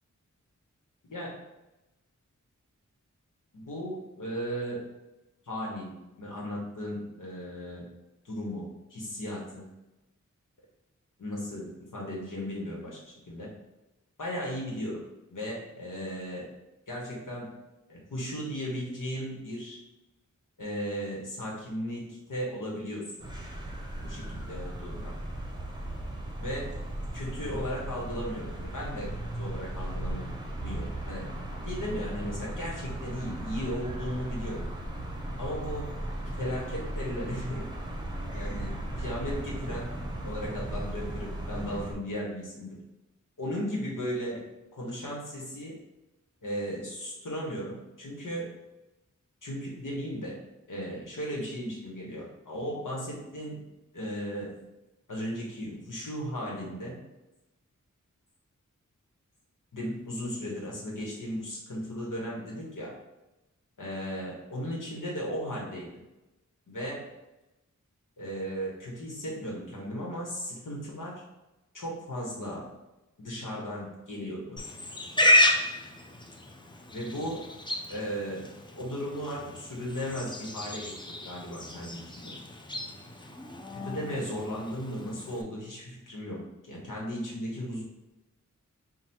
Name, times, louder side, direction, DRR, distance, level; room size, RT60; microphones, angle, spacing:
voice 1, 3.5-4.9 5.5-7.8 8.2-8.6 8.9-9.6 11.2-13.5 14.2-15.0 15.3-16.5 16.9-17.5 17.9-19.8 20.6-23.2 24.0-25.1 26.4-26.7 27.1-29.1 29.4-30.3 30.6-31.4 31.6-34.6 35.4-35.9 36.3-37.7 38.3-40.0 40.2-42.8 43.4-44.4 44.7-45.8 46.4-48.5 49.4-50.4 50.7-53.6 53.9-54.5 55.1-57.0 59.7-62.9 63.8-65.9 66.7-67.1 68.2-71.1 71.7-72.6 73.2-74.6 76.9-77.4 77.9-78.4 78.8-82.3 83.7-86.4 86.6-87.8, equal, 80° left, -3 dB, 1.3 m, -36 dB
sound 1, 23.2-41.9, right 1 dB, 15° right, 0.8 m, -36 dB
Livestock farm animals working animals, 74.6-85.4, left 1 dB, 15° left, 0.5 m, -31 dB
4.0 x 2.3 x 4.3 m, 0.98 s
wide cardioid pair, 60°, 31 cm